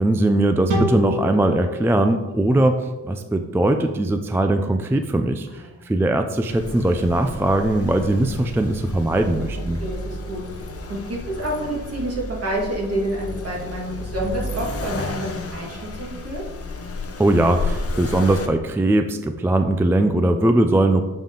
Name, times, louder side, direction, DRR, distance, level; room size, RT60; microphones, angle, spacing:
voice 1, 0.0-9.8 17.2-21.0, right 1 dB, 10° right, 7 dB, 0.3 m, -20 dB
sound 1, 0.7-4.0, equal, 75° right, 1.9 m, -28 dB
voice 2, 5.5-5.8 9.8-10.4 10.9-16.4, right 1 dB, 50° right, -2 dB, 2.0 m, -28 dB
Accelerating revving vroom, 6.5-18.5, left 2 dB, 50° left, 0.9 m, -32 dB
7.0 x 5.6 x 3.8 m, 1.2 s
wide cardioid pair, 115°, 31 cm